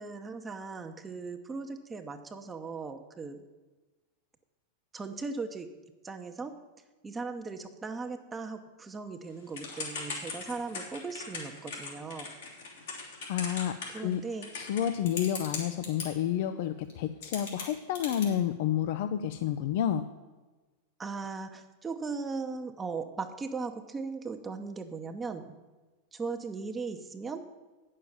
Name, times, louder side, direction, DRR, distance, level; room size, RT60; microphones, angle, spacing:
voice 1, 0.0-3.4 4.9-5.7 6.0-6.5 7.0-12.3 13.9-14.5 21.0-25.5 26.1-27.4, right 4 dB, 15° right, 5 dB, 0.7 m, -38 dB
Typing / Telephone, 9.5-16.1 16.9-17.0 17.2-18.3, left 4 dB, 80° left, 2.9 m, -39 dB
voice 2, 13.3-14.2 14.5-20.0, left 10 dB, 65° left, 10 dB, 0.5 m, -30 dB
8.7 x 6.6 x 7.0 m, 1.2 s
hypercardioid pair, 110°, 0 cm